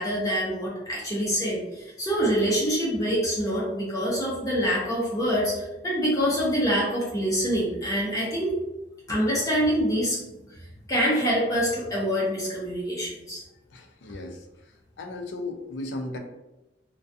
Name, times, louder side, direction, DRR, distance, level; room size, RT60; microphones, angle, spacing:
voice 1, 0.0-8.5 9.1-10.2 10.9-13.4, equal, 20° left, -6 dB, 0.5 m, -25 dB
voice 2, 13.7-14.4 15.0-16.2, left 2 dB, 80° left, 4 dB, 0.4 m, -35 dB
2.3 x 2.2 x 2.6 m, 0.98 s
head